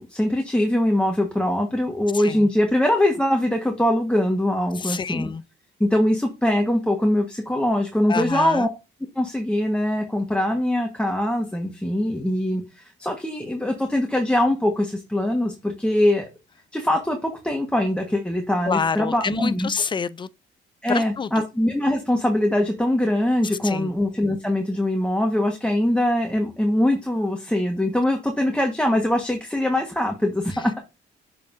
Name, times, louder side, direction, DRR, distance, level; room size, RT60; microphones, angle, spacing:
voice 1, 0.0-5.3 5.8-8.7 9.2-16.3 16.7-19.7 20.8-30.8, left 1 dB, 5° left, 1.3 m, -22 dB
voice 2, 2.1-2.5 4.8-5.4 8.1-8.7 18.7-20.3 20.9-21.4 23.6-23.9, left 5 dB, 25° left, 0.4 m, -27 dB
6.6 x 5.5 x 2.6 m
cardioid pair, 90°, 20 cm